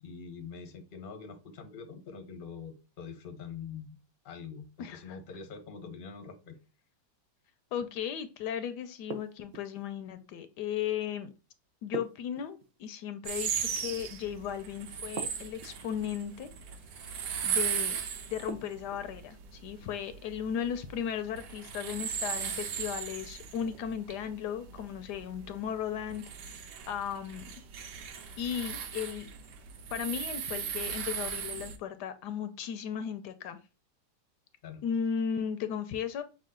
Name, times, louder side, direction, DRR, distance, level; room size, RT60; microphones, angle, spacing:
voice 1, 0.0-4.0 4.2-6.6 34.6-34.8, left 6 dB, 45° left, 0.7 m, -44 dB
voice 2, 4.8-5.2 7.7-11.3 11.8-16.5 17.4-18.0 18.3-27.5 28.4-29.3 29.9-33.6 34.8-36.2, left 8 dB, 75° left, 1.1 m, -36 dB
sound 1, 9.1-9.9 11.9-13.0 15.2-15.9 18.5-19.1, right 6 dB, 60° right, 1.0 m, -42 dB
sound 2, 13.2-31.8, right 7 dB, 80° right, 1.3 m, -38 dB
6.2 x 2.3 x 3.6 m
omnidirectional pair, 1.8 m